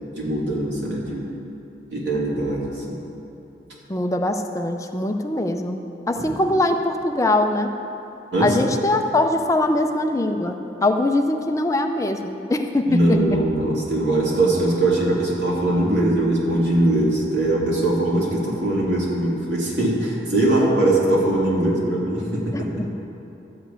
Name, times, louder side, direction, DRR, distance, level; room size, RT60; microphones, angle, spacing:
voice 1, 0.2-1.3 1.9-2.7 6.1-6.4 8.3-8.5 12.9-22.8, right 1 dB, 85° right, -5 dB, 2.6 m, -21 dB
voice 2, 3.9-7.7 8.4-13.4 22.8-22.9, left 2 dB, 20° left, 5 dB, 0.5 m, -22 dB
12.0 x 5.2 x 8.4 m, 3.0 s
head